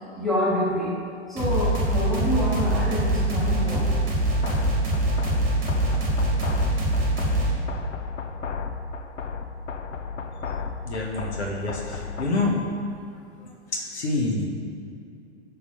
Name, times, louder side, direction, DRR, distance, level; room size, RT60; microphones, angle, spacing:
voice 1, 0.2-0.9 1.3-3.9 4.5-4.6, equal, ahead, -7 dB, 1.1 m, -26 dB
sound 1, 1.4-7.6, right 1 dB, 25° right, 1.4 m, -24 dB
sound 2, 4.4-12.4, left 5 dB, 80° left, 0.5 m, -34 dB
voice 2, 10.8-12.7 13.7-14.5, left 2 dB, 65° left, 0 dB, 1.1 m, -27 dB
6.0 x 3.8 x 5.5 m, 2.6 s
figure-of-eight pair, 105°, 36 cm